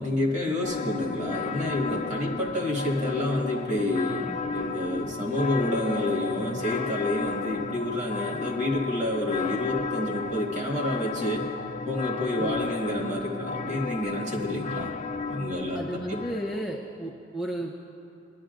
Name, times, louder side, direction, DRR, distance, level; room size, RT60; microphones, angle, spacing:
voice 1, 0.0-11.5 11.9-14.9 15.3-15.8, left 1 dB, 40° right, -1 dB, 1.8 m, -29 dB
sound 1, 0.6-16.6, left 4 dB, 35° left, 0.3 m, -33 dB
voice 2, 15.7-17.7, right 1 dB, 5° right, -4 dB, 0.7 m, -34 dB
22.0 x 11.0 x 2.6 m, 2.7 s
head